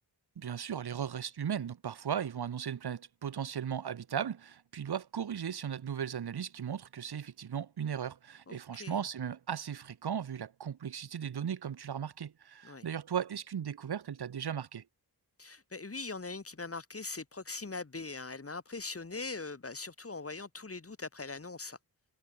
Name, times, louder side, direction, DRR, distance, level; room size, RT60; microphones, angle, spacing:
voice 1, 0.4-14.8, right 8 dB, 75° right, 1.0 m, -37 dB
voice 2, 8.5-9.0 12.6-12.9 15.4-21.8, left 3 dB, 35° left, 2.2 m, -41 dB
wide cardioid pair, 60°, 39 cm